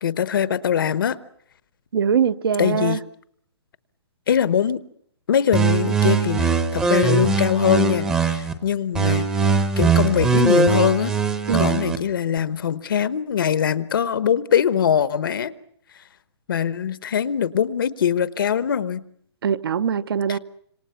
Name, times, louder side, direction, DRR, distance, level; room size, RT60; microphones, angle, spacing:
voice 1, 0.0-1.2 2.6-3.0 4.3-4.8 5.3-9.2 9.8-11.1 11.6-15.5 16.5-19.0 20.3-20.4, left 8 dB, 55° left, 1.0 m, -22 dB
voice 2, 1.9-3.0 11.5-11.7 19.4-20.4, right 7 dB, 60° right, 0.9 m, -22 dB
sound 1, 5.5-8.5 8.9-12.0, right 5 dB, 5° right, 0.9 m, -20 dB
27.0 x 24.5 x 5.7 m
hypercardioid pair, 175°, 14 cm